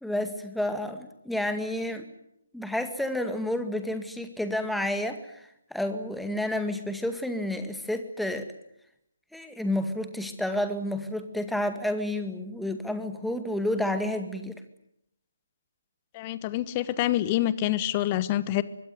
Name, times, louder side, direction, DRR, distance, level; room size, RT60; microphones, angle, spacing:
voice 1, 0.0-2.1 2.5-5.4 5.7-8.5 9.3-14.6, left 1 dB, ahead, 7 dB, 2.1 m, -30 dB
voice 2, 16.1-18.6, left 13 dB, 25° left, 16 dB, 1.2 m, -26 dB
24.5 x 22.0 x 9.5 m, 0.80 s
figure-of-eight pair, 140°, 0 cm